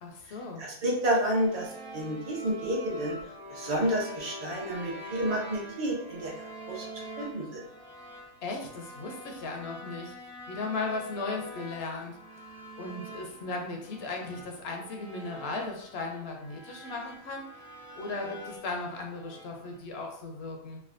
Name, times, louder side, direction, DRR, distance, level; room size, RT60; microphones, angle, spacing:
voice 1, 0.0-0.6 8.4-10.1 10.5-12.2 12.8-17.6 18.0-20.8, left 3 dB, 65° left, 1 dB, 0.7 m, -36 dB
voice 2, 0.6-3.2 3.5-7.6, right 1 dB, 40° right, -3 dB, 0.6 m, -30 dB
sound 1, 0.9-19.8, equal, 70° right, 1.0 m, -45 dB
3.3 x 2.3 x 2.4 m, 0.68 s
omnidirectional pair, 1.5 m